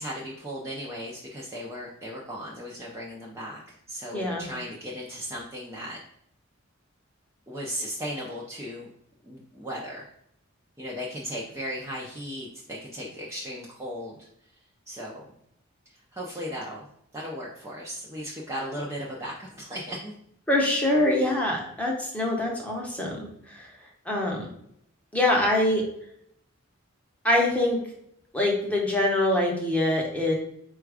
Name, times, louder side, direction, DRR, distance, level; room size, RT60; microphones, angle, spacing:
voice 1, 0.0-6.0 7.5-8.9 9.2-10.1 10.8-14.3 14.9-15.3 15.9-16.9 17.1-20.1, equal, 15° right, -4 dB, 0.5 m, -36 dB
voice 2, 4.1-4.5 20.5-23.7 24.1-24.5 25.1-25.8 27.2-27.8 28.3-30.3, left 1 dB, 5° left, -2 dB, 0.9 m, -24 dB
4.4 x 2.3 x 4.7 m, 0.72 s
head